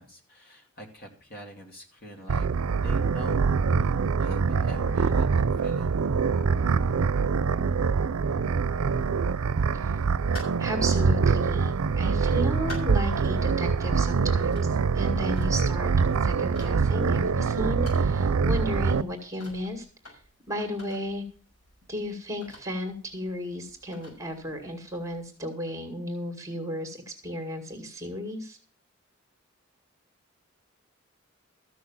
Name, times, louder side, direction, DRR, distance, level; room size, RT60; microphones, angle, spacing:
voice 1, 0.0-2.5 2.8-3.4 3.8-6.1, equal, 45° left, 2 dB, 2.5 m, -44 dB
sound 1, 2.3-19.0, right 5 dB, 90° right, 0.5 m, -24 dB
sound 2, 9.9-25.3, left 1 dB, 70° left, 6.6 m, -51 dB
voice 2, 10.6-15.9 16.2-20.2 20.5-21.2 21.9-28.6, left 1 dB, 15° right, 4 dB, 2.0 m, -34 dB
14.0 x 6.2 x 7.2 m, 0.40 s
head